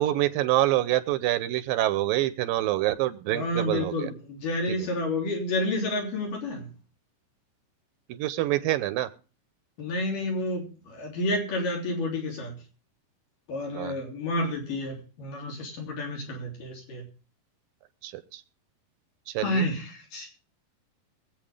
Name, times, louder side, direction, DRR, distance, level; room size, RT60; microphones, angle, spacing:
voice 1, 0.0-4.1 4.7-4.8 8.1-9.1 13.7-14.0 18.0-18.4 19.3-19.6, right 15 dB, 80° right, 13 dB, 2.5 m, -26 dB
voice 2, 3.3-6.7 9.8-12.5 13.5-17.1 19.4-20.3, left 1 dB, 65° left, 0 dB, 4.9 m, -30 dB
23.0 x 8.3 x 3.6 m, 0.37 s
omnidirectional pair, 4.2 m